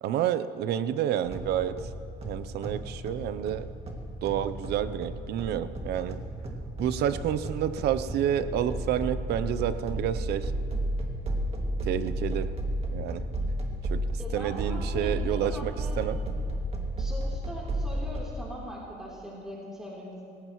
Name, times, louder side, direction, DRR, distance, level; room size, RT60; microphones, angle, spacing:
voice 1, 0.0-1.9 2.2-3.7 4.2-6.2 6.8-10.5 11.8-12.5 12.9-13.2 13.9-14.0 14.3-16.2, right 10 dB, 75° right, 14 dB, 0.7 m, -29 dB
sound 1, 1.2-18.2, right 1 dB, 35° right, 2.2 m, -33 dB
voice 2, 14.2-16.0 17.0-20.2, equal, 5° right, -6 dB, 3.5 m, -41 dB
25.0 x 16.0 x 3.1 m, 2.6 s
cardioid pair, 110°, 17 cm